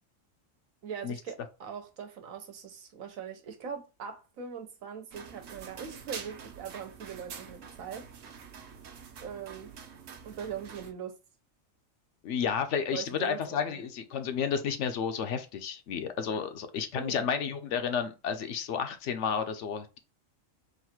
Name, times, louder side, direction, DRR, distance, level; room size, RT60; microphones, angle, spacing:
voice 1, 0.8-8.1 9.2-9.7 10.2-11.2 12.9-13.8 16.9-17.3, right 7 dB, 90° right, 1.3 m, -41 dB
sound 1, 5.1-10.9, right 6 dB, 75° right, 1.1 m, -46 dB
voice 2, 12.2-20.0, left 7 dB, 70° left, 0.9 m, -31 dB
4.0 x 2.5 x 4.3 m
omnidirectional pair, 1.4 m